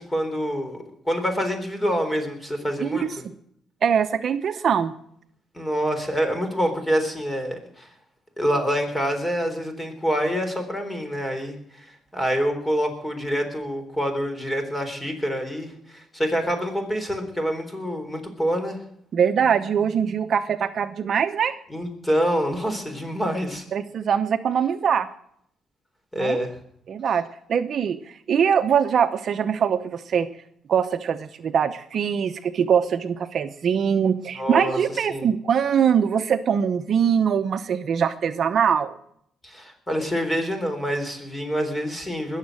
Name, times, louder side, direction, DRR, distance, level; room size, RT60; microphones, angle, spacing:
voice 1, 0.0-3.1 5.5-7.9 8.4-18.8 21.7-23.6 26.1-26.5 34.4-34.8 35.1-35.3 39.4-42.4, equal, 15° left, 6 dB, 3.7 m, -26 dB
voice 2, 3.8-4.9 19.1-21.6 23.7-25.1 26.2-26.4 26.9-30.3 30.7-39.0, right 7 dB, 55° right, 10 dB, 0.8 m, -22 dB
20.5 x 7.4 x 7.6 m, 0.71 s
cardioid pair, 90°, 0 cm